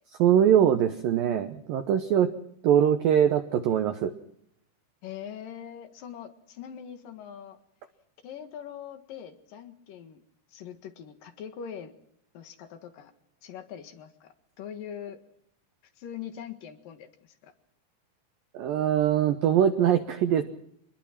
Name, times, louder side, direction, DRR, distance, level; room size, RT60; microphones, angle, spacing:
voice 1, 0.2-2.3 2.6-4.1 18.5-20.4, right 9 dB, 75° right, 8 dB, 2.1 m, -22 dB
voice 2, 5.0-7.6 8.2-10.2 10.5-11.9 12.3-13.1 13.4-15.2 16.0-17.5, left 8 dB, 60° left, 9 dB, 2.8 m, -42 dB
25.5 x 21.0 x 6.0 m, 0.71 s
omnidirectional pair, 5.4 m